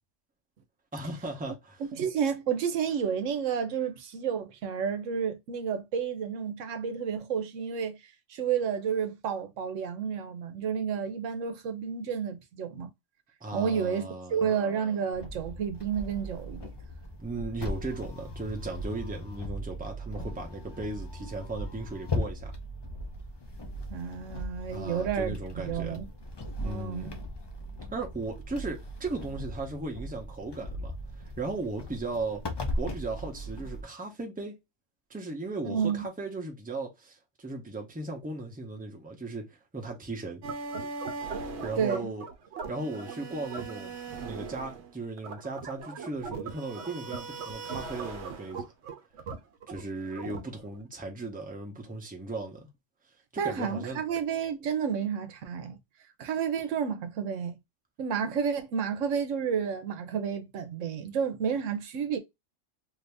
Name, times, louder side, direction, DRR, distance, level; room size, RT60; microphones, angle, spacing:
voice 1, 0.9-1.8 13.4-14.5 17.2-22.5 24.7-26.0 26.6-27.1 27.9-32.4 32.8-34.6 35.1-39.5 39.7-40.4 41.6-42.3 42.7-48.7 49.7-52.7 53.3-54.0, right 2 dB, 10° right, 0.7 m, -37 dB
voice 2, 1.8-8.0 8.3-12.9 13.5-16.7 23.9-26.1 26.6-27.1 35.6-36.1 41.8-42.1 53.4-55.8 56.2-57.6 58.0-62.2, right 7 dB, 85° right, 1.0 m, -31 dB
sound 1, 15.1-33.8, left 1 dB, 45° left, 0.3 m, -38 dB
sound 2, 40.4-50.8, right 4 dB, 65° right, 1.0 m, -39 dB
2.8 x 2.6 x 3.3 m
omnidirectional pair, 1.3 m